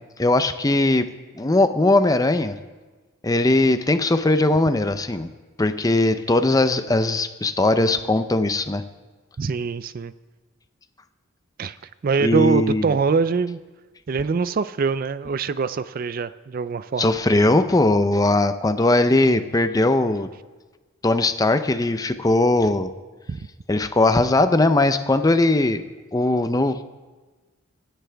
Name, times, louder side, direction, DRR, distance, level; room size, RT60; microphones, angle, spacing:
voice 1, 0.2-1.1 1.4-2.6 3.2-5.3 5.6-8.8 12.2-13.0 17.0-20.3 21.0-22.9 23.7-25.8 26.1-26.8, left 2 dB, 15° left, 10 dB, 0.5 m, -19 dB
voice 2, 9.4-10.1 11.6-11.8 12.0-13.6 14.1-17.1 23.3-23.4, right 5 dB, 45° right, 14 dB, 0.4 m, -23 dB
26.5 x 10.0 x 3.4 m, 1.3 s
head